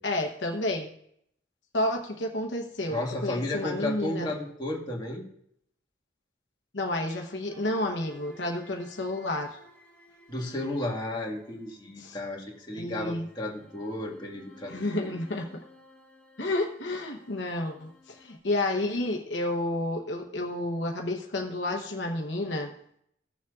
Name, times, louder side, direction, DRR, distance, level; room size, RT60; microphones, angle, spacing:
voice 1, 0.0-0.9 1.7-4.3 6.7-9.6 12.0-12.2 12.8-13.3 14.7-15.6 16.4-22.7, left 1 dB, 65° left, 2 dB, 1.0 m, -30 dB
voice 2, 2.9-5.2 10.3-14.9, left 1 dB, 25° left, -2 dB, 1.8 m, -33 dB
sound 1, 7.5-12.2 13.1-18.4, left 2 dB, 5° left, 1.9 m, -54 dB
16.0 x 7.2 x 2.5 m, 0.71 s
head